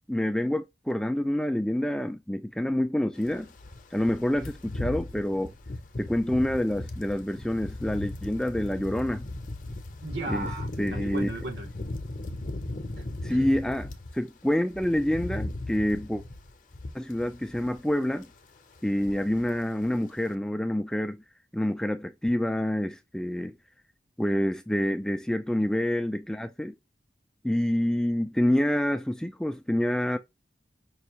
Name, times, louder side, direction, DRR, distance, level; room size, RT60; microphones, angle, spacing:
voice 1, 0.1-3.5 3.9-5.5 6.0-9.2 10.3-10.5 10.8-11.3 13.2-16.2 16.9-18.3 18.8-21.2 21.5-23.6 24.2-26.7 27.4-30.2, left 1 dB, 5° left, 0.3 m, -27 dB
sound 1, 3.2-14.2 14.5-17.9 18.2-18.4 18.8-19.6 19.8-20.0, left 2 dB, 45° left, 0.7 m, -37 dB
voice 2, 10.0-11.7 13.0-13.5, right 2 dB, 75° right, 1.6 m, -36 dB
5.5 x 2.4 x 3.0 m
head